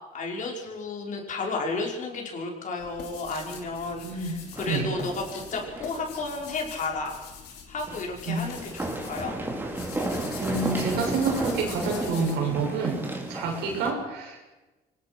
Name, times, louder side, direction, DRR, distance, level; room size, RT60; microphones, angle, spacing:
voice 1, 0.1-7.2 7.7-9.4, left 3 dB, 50° left, 0 dB, 5.6 m, -32 dB
sound 1, 2.8-12.3, left 6 dB, 75° left, 4.8 m, -43 dB
voice 2, 4.0-4.9 8.3-8.5 10.4-14.4, right 4 dB, 90° right, 1 dB, 6.5 m, -28 dB
sound 2, 4.5-6.1 6.4-6.5 7.8-13.9, right 1 dB, 10° right, 4.2 m, -33 dB
24.0 x 19.5 x 6.2 m, 1.1 s
cardioid pair, 110°, 17 cm